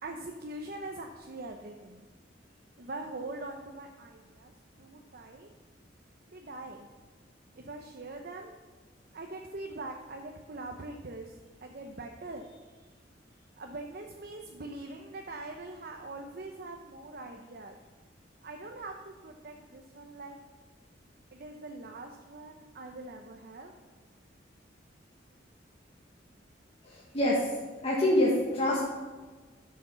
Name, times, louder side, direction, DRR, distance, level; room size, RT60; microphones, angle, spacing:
voice 1, 0.0-2.1 2.8-4.5 4.8-5.5 6.3-6.9 7.6-8.5 9.1-11.4 11.6-12.8 13.6-17.8 18.4-20.4 21.3-23.7, right 2 dB, 55° right, 3 dB, 0.8 m, -43 dB
voice 2, 26.8-27.5 27.8-28.8, left 1 dB, 35° left, -5 dB, 1.5 m, -26 dB
11.0 x 6.5 x 6.9 m, 1.3 s
head